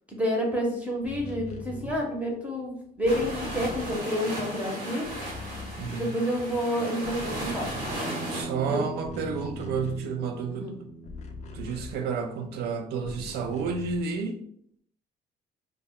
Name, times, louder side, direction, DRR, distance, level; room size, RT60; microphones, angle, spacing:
voice 1, 0.1-5.1 5.9-7.7 8.7-8.8 10.5-10.7, equal, 10° right, -2 dB, 0.7 m, -29 dB
sound 1, 0.9-4.6 4.9-6.6 6.9-12.5 13.0-14.2, left 2 dB, 45° left, 0.4 m, -42 dB
sound 2, 3.1-8.4, right 1 dB, 90° right, 1.0 m, -35 dB
voice 2, 5.8-6.2 8.3-10.8 11.5-14.4, right 5 dB, 75° right, 6 dB, 0.4 m, -31 dB
Bass guitar, 8.1-12.4, right 3 dB, 55° right, 0.8 m, -41 dB
2.1 x 2.1 x 3.5 m, 0.64 s
cardioid pair, 110°, 17 cm